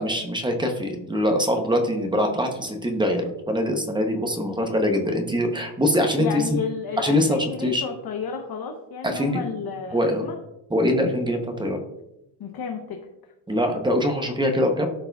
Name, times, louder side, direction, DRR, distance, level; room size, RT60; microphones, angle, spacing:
voice 1, 0.0-6.4 7.0-7.8 9.0-9.4 9.9-10.3 10.7-11.8 13.5-14.9, left 1 dB, 10° right, 4 dB, 0.6 m, -23 dB
voice 2, 6.2-10.4 12.4-13.1, left 6 dB, 45° left, 3 dB, 0.7 m, -32 dB
13.0 x 4.8 x 2.3 m, 0.89 s
cardioid pair, 170°, 50 cm